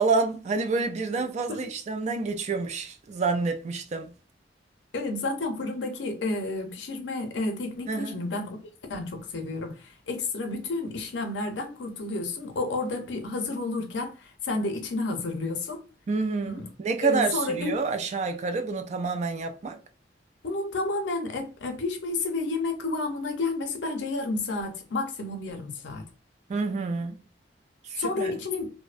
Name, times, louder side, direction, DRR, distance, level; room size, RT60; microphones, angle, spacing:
voice 1, 0.0-4.2 7.9-8.2 16.1-19.8 26.5-27.2 27.8-28.3, right 4 dB, 40° right, 0.3 m, -28 dB
voice 2, 4.9-8.6 8.9-15.8 16.5-16.7 17.0-17.8 20.4-26.1 28.0-28.7, left 3 dB, 85° left, 0.6 m, -31 dB
2.5 x 2.1 x 2.4 m
head